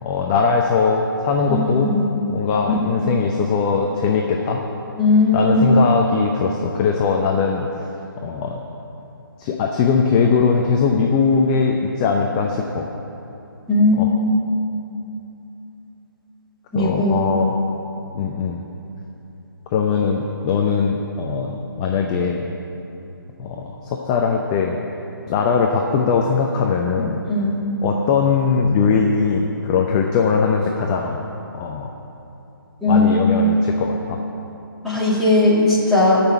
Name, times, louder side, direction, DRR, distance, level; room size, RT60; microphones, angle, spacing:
voice 1, 0.0-1.9 2.3-4.6 5.3-7.7 8.2-8.6 9.4-12.9 14.0-14.1 16.7-17.5 18.1-18.6 19.7-22.5 23.4-24.8 25.3-27.2 27.8-31.2 31.5-31.9 32.9-34.2 34.9-35.0, left 5 dB, 20° left, 1 dB, 0.6 m, -20 dB
voice 2, 1.5-2.1 5.0-5.6 13.7-14.0 16.7-17.2 27.3-27.6 32.8-33.2 34.8-36.2, left 2 dB, ahead, -9 dB, 2.1 m, -17 dB
15.5 x 5.9 x 9.3 m, 2.9 s
figure-of-eight pair, 155°, 12 cm